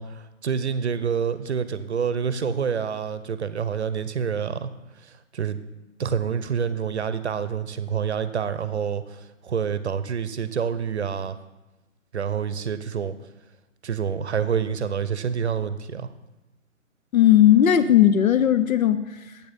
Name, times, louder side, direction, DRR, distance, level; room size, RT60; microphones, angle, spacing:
voice 1, 0.0-4.7 5.3-5.6 6.0-11.4 12.1-13.1 13.8-16.1, right 7 dB, 55° right, 13 dB, 0.7 m, -27 dB
voice 2, 17.1-19.4, left 11 dB, 85° left, 10 dB, 0.7 m, -17 dB
8.5 x 6.4 x 5.2 m, 1.1 s
hypercardioid pair, 170°, 40 cm